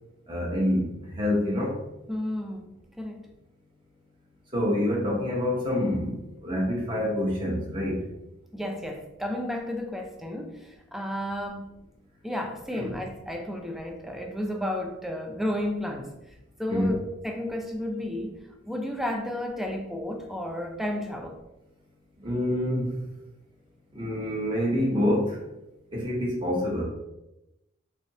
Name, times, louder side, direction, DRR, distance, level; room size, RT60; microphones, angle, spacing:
voice 1, 0.3-1.7 4.5-8.0 12.7-12.9 16.7-16.9 22.2-22.9 23.9-25.4 25.9-26.8, left 1 dB, 25° right, -4 dB, 1.0 m, -27 dB
voice 2, 2.1-2.7 3.0-3.3 8.5-11.7 12.2-16.1 16.6-18.4 18.6-21.4, left 1 dB, ahead, 2 dB, 0.4 m, -32 dB
3.6 x 3.4 x 2.8 m, 0.94 s
head